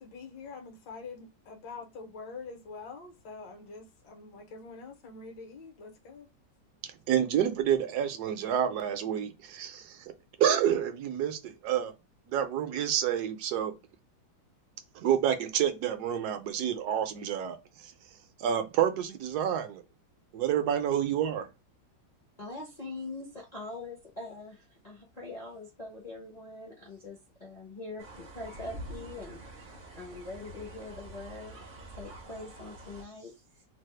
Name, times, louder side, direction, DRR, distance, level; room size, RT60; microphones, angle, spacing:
voice 1, 0.0-6.3, left 4 dB, 75° left, 1.4 m, -45 dB
voice 2, 7.1-10.0 10.4-11.9 12.3-13.7 15.0-17.6 18.4-19.8 20.3-21.5, right 9 dB, 70° right, 1.0 m, -28 dB
voice 3, 22.4-33.4, left 2 dB, 45° left, 0.5 m, -43 dB
sound 1, 28.0-33.0, right 1 dB, 50° right, 0.5 m, -46 dB
3.3 x 2.0 x 3.1 m
omnidirectional pair, 2.0 m